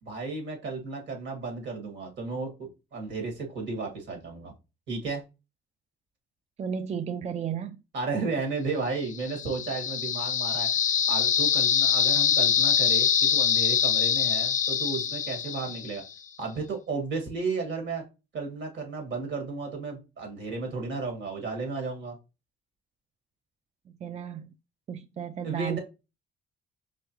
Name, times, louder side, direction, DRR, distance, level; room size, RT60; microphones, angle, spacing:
voice 1, 0.0-4.5 4.9-5.2 7.9-10.7 11.1-16.0 16.4-18.0 18.3-22.2 25.4-25.8, right 4 dB, 65° right, 2.1 m, -33 dB
voice 2, 6.6-7.8 24.0-24.5 24.9-25.8, right 8 dB, 35° right, 0.4 m, -33 dB
sound 1, 9.1-16.1, left 8 dB, 40° left, 0.4 m, -24 dB
5.0 x 3.4 x 3.1 m
cardioid pair, 90°, 20 cm